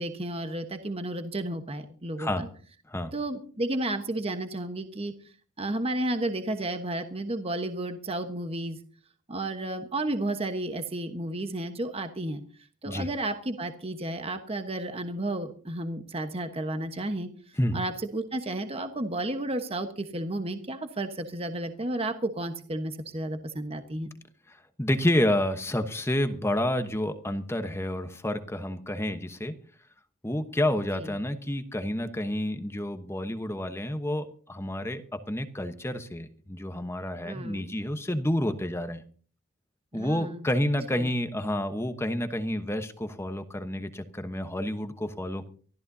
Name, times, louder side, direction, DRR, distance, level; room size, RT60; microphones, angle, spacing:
voice 1, 0.0-2.5 3.1-5.1 5.6-8.8 9.3-12.4 12.8-17.3 17.7-24.1 30.8-31.1 37.2-37.7 39.9-40.5 40.9-41.1, right 1 dB, 25° right, 7 dB, 1.2 m, -32 dB
voice 2, 24.5-29.5 30.2-39.0 39.9-45.5, left 1 dB, 10° left, 8 dB, 1.0 m, -29 dB
24.5 x 14.5 x 2.8 m, 0.42 s
head